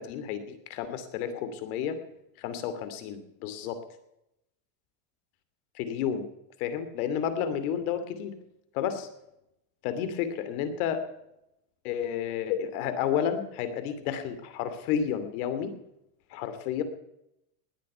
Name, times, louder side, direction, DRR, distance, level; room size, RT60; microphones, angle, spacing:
voice 1, 0.0-2.0 2.4-3.8 5.8-6.3 6.6-8.3 8.7-9.1 9.8-11.0 11.8-15.7 16.3-16.8, left 8 dB, 65° left, 11 dB, 2.8 m, -31 dB
20.0 x 8.6 x 5.7 m, 0.83 s
supercardioid pair, 150°, 47 cm